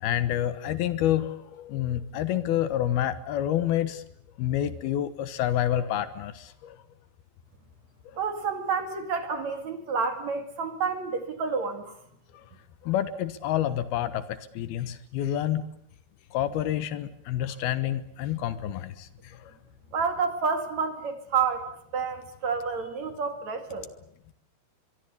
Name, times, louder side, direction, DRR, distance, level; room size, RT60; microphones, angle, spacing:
voice 1, 0.0-4.0 4.4-6.8 12.3-12.5 12.8-15.6 16.3-19.5, left 11 dB, 75° left, 13 dB, 3.1 m, -28 dB
voice 2, 8.2-11.8 19.9-23.9, right 5 dB, 50° right, 7 dB, 3.3 m, -29 dB
24.0 x 23.5 x 8.4 m, 0.70 s
omnidirectional pair, 4.5 m